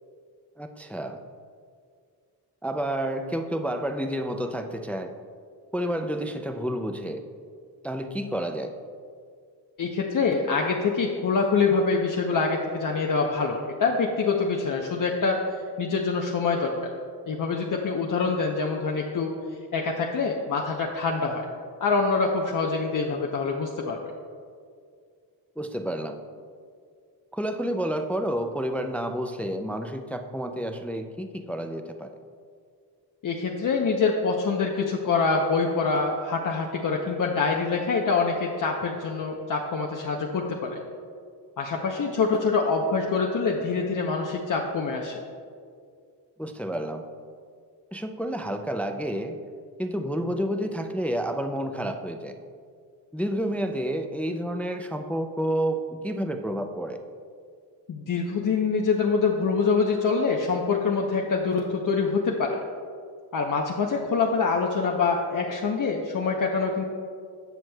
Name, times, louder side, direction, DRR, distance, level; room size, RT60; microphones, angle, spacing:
voice 1, 0.6-1.2 2.6-5.1 5.7-7.2 7.8-8.7 25.6-26.2 27.3-32.1 46.4-47.0 47.9-49.4 49.8-52.3 53.1-57.0, equal, 5° left, 6 dB, 0.4 m, -30 dB
voice 2, 9.8-15.4 15.8-16.9 17.3-19.3 19.7-21.5 21.8-24.0 33.2-40.8 41.6-45.2 57.9-62.6 63.3-66.8, left 4 dB, 50° left, 0 dB, 0.8 m, -25 dB
17.5 x 6.0 x 2.3 m, 2.2 s
cardioid pair, 100°, 41 cm